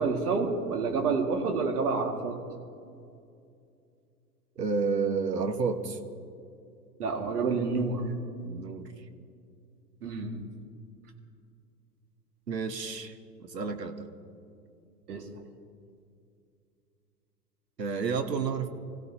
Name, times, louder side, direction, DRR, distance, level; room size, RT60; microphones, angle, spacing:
voice 1, 0.0-2.4 7.0-8.1 10.0-10.4 15.1-15.3, right 4 dB, 65° right, 3 dB, 2.3 m, -28 dB
voice 2, 4.6-6.0 8.4-8.9 12.5-13.1 13.4-14.1 17.8-18.7, right 5 dB, 80° right, 8 dB, 1.3 m, -30 dB
26.0 x 16.0 x 2.9 m, 2.4 s
figure-of-eight pair, 100°, 49 cm